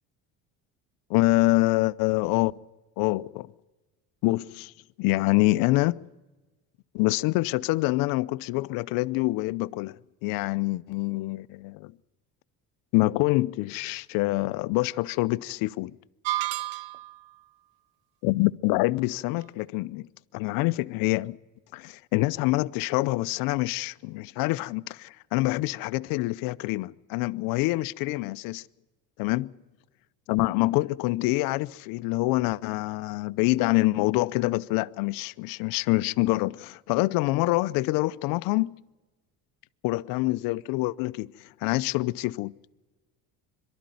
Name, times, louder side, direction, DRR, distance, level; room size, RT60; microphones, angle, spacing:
voice 1, 1.1-2.6 3.0-3.5 4.2-4.7 5.0-6.1 6.9-11.9 12.9-16.0 18.2-20.1 20.3-21.4 21.7-28.6 29.2-29.5 30.3-38.8 39.8-42.6, left 21 dB, 75° left, 0.6 m, -26 dB
sound 1, 16.2-17.2, right 14 dB, 80° right, 0.7 m, -30 dB
23.0 x 12.5 x 9.3 m
cardioid pair, 130°, 35 cm